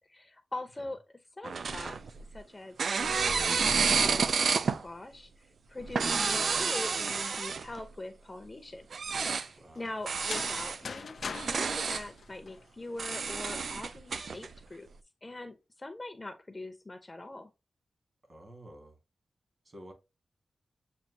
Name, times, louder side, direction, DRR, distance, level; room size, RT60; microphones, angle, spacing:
voice 1, 0.1-1.0 1.4-2.0 2.3-5.3 5.7-8.9 9.3-11.2 11.4-14.9 15.2-17.5, left 2 dB, 20° left, 0.6 m, -43 dB
sound 1, 1.4-2.4 2.8-4.8 5.8-7.8 8.9-9.5 10.1-10.8 11.3-12.1 13.0-14.5, right 5 dB, 70° right, 0.3 m, -30 dB
voice 2, 9.6-10.2 18.2-19.0 19.6-19.9, right 1 dB, 45° right, 1.9 m, -51 dB
sound 2, 10.1-13.0, left 5 dB, 65° left, 0.4 m, -41 dB
7.1 x 2.5 x 2.7 m
wide cardioid pair, 145°, 0 cm